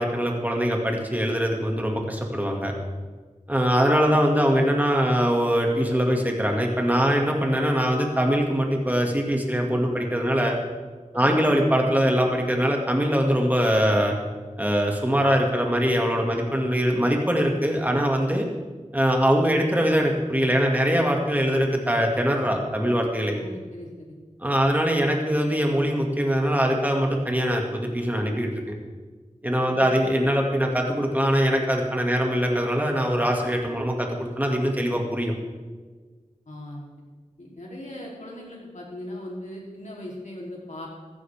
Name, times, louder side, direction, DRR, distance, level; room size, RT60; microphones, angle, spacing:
voice 1, 0.0-2.7 3.5-10.6 11.1-14.2 14.6-18.5 18.9-23.3 24.4-28.5 29.4-35.3, equal, 15° right, 1 dB, 2.3 m, -22 dB
voice 2, 11.1-11.5 23.3-24.2 29.6-30.0 36.5-36.8 37.4-40.9, left 1 dB, 70° left, -3 dB, 3.6 m, -39 dB
15.0 x 14.5 x 3.7 m, 1.4 s
wide cardioid pair, 60°, 13 cm